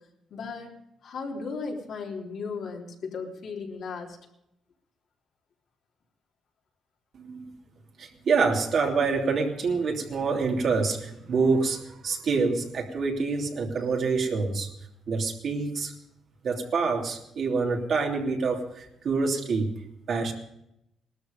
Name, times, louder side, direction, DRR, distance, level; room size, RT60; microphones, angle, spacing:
voice 1, 0.3-0.7 1.0-4.2, left 4 dB, 65° left, -1 dB, 3.7 m, -35 dB
voice 2, 7.1-7.5 8.0-14.7 15.1-15.9 16.4-19.7 20.1-20.3, right 4 dB, 55° right, 1 dB, 3.0 m, -26 dB
19.0 x 13.0 x 5.2 m, 0.80 s
cardioid pair, 90°, 0 cm